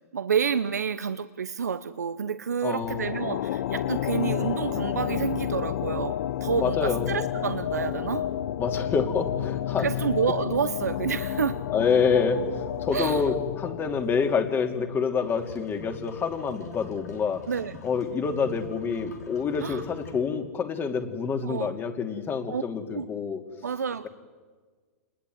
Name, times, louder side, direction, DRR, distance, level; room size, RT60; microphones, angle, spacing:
voice 1, 0.1-8.2 9.8-11.6 12.9-13.2 17.5-17.8 19.6-19.8 21.4-21.7 22.5-22.6 22.9-23.1 23.6-24.1, right 7 dB, 90° right, 12 dB, 0.9 m, -29 dB
voice 2, 2.6-3.1 6.6-7.1 8.6-9.9 11.7-17.5 17.8-23.4, left 5 dB, 25° left, 7 dB, 2.7 m, -27 dB
sound 1, 2.8-15.4, left 11 dB, 70° left, 0.8 m, -31 dB
sound 2, 15.2-20.2, left 5 dB, 85° left, 5.5 m, -46 dB
27.5 x 20.5 x 9.5 m, 1.5 s
hypercardioid pair, 115°, 9 cm